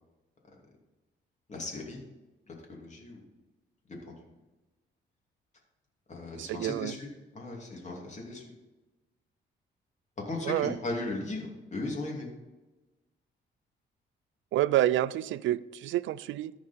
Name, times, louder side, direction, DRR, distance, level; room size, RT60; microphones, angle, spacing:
voice 1, 1.5-2.0 2.5-3.3 4.0-4.1 6.1-8.4 10.3-12.3, left 2 dB, 35° left, -1 dB, 2.7 m, -37 dB
voice 2, 6.3-7.0 10.4-10.7 14.5-16.5, right 13 dB, 75° right, 18 dB, 0.4 m, -28 dB
14.0 x 4.8 x 4.4 m, 1.1 s
cardioid pair, 90°, 20 cm